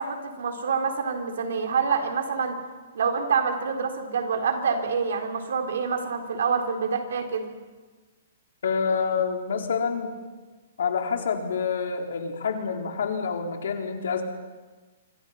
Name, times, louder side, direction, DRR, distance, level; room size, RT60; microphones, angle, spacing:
voice 1, 0.0-2.6 2.9-7.5, right 5 dB, 70° right, 4 dB, 4.0 m, -26 dB
voice 2, 8.6-10.2 10.8-14.2, left 6 dB, 75° left, 3 dB, 3.8 m, -27 dB
26.0 x 25.0 x 5.7 m, 1.3 s
hypercardioid pair, 175°, 0 cm